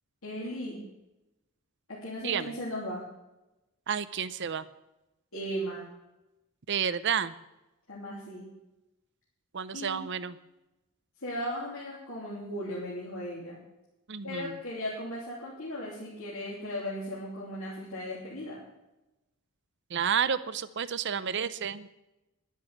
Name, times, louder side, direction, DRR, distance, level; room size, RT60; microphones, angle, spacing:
voice 1, 0.2-0.8 1.9-3.0 5.3-5.8 7.9-8.5 9.7-10.1 11.2-13.6 14.2-18.6, equal, 65° left, -6 dB, 3.0 m, -37 dB
voice 2, 2.2-2.5 3.9-4.6 6.7-7.3 9.5-10.4 14.1-14.6 19.9-21.9, right 7 dB, 55° right, 15 dB, 0.6 m, -30 dB
11.0 x 10.5 x 7.2 m, 0.97 s
head